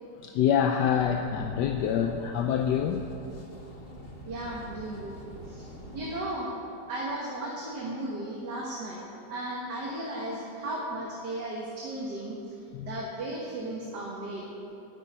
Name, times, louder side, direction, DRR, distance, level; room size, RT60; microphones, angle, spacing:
voice 1, 0.2-3.0 12.8-13.0, left 8 dB, 75° left, 5 dB, 1.2 m, -26 dB
sound 1, 0.9-6.3, equal, 35° left, 1.6 m, -45 dB
voice 2, 4.3-5.1 5.5-5.7 5.9-6.5 6.9-9.0 9.3-12.4 12.8-14.5, right 1 dB, 70° right, -3 dB, 2.1 m, -35 dB
9.8 x 9.7 x 8.6 m, 2.8 s
omnidirectional pair, 1.9 m